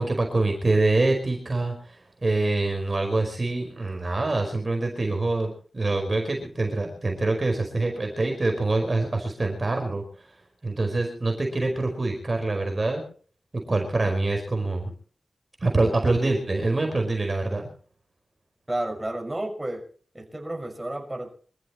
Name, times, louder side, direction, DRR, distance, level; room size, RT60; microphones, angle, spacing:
voice 1, 0.0-10.3 10.6-13.0 13.5-14.9 15.6-17.7, right 2 dB, 35° right, 3 dB, 5.0 m, -25 dB
voice 2, 18.7-19.8 20.1-21.4, right 1 dB, 15° right, 1 dB, 5.8 m, -31 dB
25.5 x 14.5 x 3.1 m, 0.44 s
wide cardioid pair, 95°, 0 cm